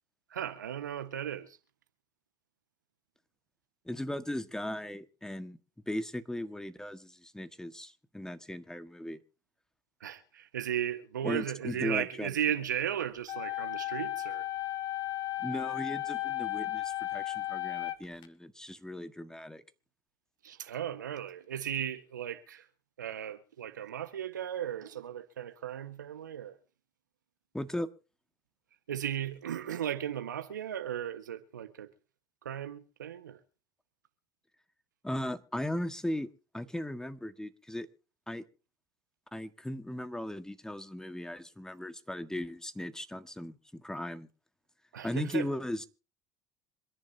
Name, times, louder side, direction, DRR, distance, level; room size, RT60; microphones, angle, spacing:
voice 1, 0.3-1.6 10.0-14.5 20.4-22.6 23.0-26.5 28.9-31.9 32.4-33.4 44.9-45.5, right 10 dB, 85° right, 1.4 m, -36 dB
voice 2, 3.8-5.6 5.9-9.2 11.2-12.3 15.4-19.6 27.5-27.9 35.0-36.3 36.5-37.9 38.3-38.4 39.3-44.3 45.0-45.8, left 1 dB, 5° left, 1.6 m, -37 dB
sound 1, 13.3-18.3, left 14 dB, 50° left, 1.9 m, -35 dB
26.5 x 11.0 x 2.8 m
hypercardioid pair, 70°, 10 cm